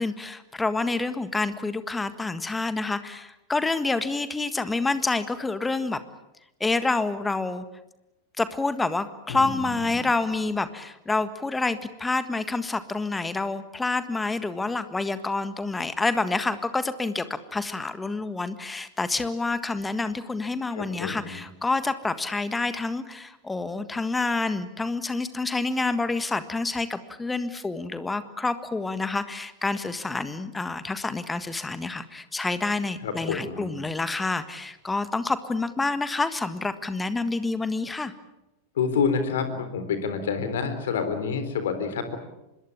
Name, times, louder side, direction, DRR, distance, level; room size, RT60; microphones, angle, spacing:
voice 1, 0.0-6.0 6.6-7.6 8.4-17.2 17.5-38.1, left 3 dB, 10° left, 12 dB, 1.6 m, -28 dB
voice 2, 9.3-10.1 20.7-21.4 33.0-33.7 38.8-42.2, left 5 dB, 60° left, 10 dB, 3.8 m, -28 dB
25.5 x 21.5 x 8.7 m, 0.94 s
figure-of-eight pair, 90°, 0 cm